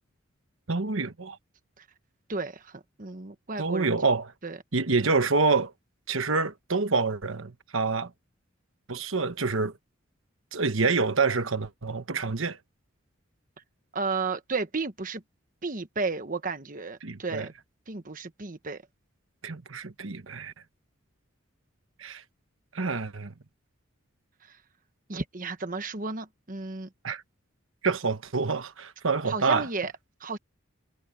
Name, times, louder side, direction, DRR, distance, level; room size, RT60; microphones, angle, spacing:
voice 1, 0.7-1.4 3.6-4.3 4.7-5.7 6.1-8.1 8.9-9.7 10.5-12.6 17.0-17.5 19.4-20.5 22.0-22.2 22.7-23.3 27.0-27.2 27.8-29.7, right 4 dB, 80° right, 1.2 m, -27 dB
voice 2, 2.3-3.9 4.4-4.6 13.9-15.2 15.6-17.5 17.9-18.8 25.1-26.9 29.3-29.9 30.2-30.4, right 4 dB, 40° right, 1.2 m, -33 dB
head